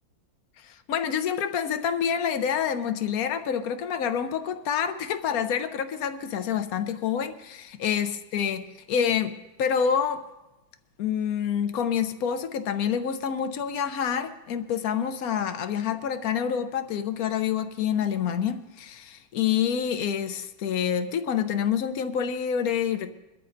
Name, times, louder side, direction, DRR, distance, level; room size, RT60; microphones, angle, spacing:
voice 1, 0.6-10.2 11.0-23.1, left 8 dB, 70° left, 0.9 m, -27 dB
23.0 x 12.5 x 2.6 m
omnidirectional pair, 2.1 m